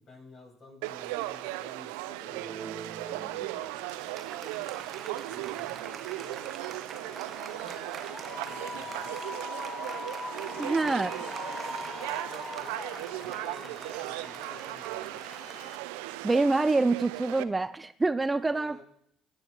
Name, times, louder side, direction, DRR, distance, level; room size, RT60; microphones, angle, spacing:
voice 1, 0.0-2.7 3.0-7.1 7.5-9.1 10.3-15.2 18.5-18.8, left 2 dB, 45° left, 0 dB, 6.4 m, -52 dB
Conversation / Crowd, 0.8-17.4, right 17 dB, 80° right, 0.6 m, -37 dB
Applause, 2.2-16.3, right 6 dB, 45° right, 1.0 m, -45 dB
sound 1, 7.0-15.8, left 2 dB, 25° left, 0.9 m, -42 dB
voice 2, 10.6-11.1 16.2-18.8, right 3 dB, 20° right, 14 dB, 0.6 m, -26 dB
24.5 x 9.2 x 4.0 m, 0.72 s
hypercardioid pair, 60°, 0 cm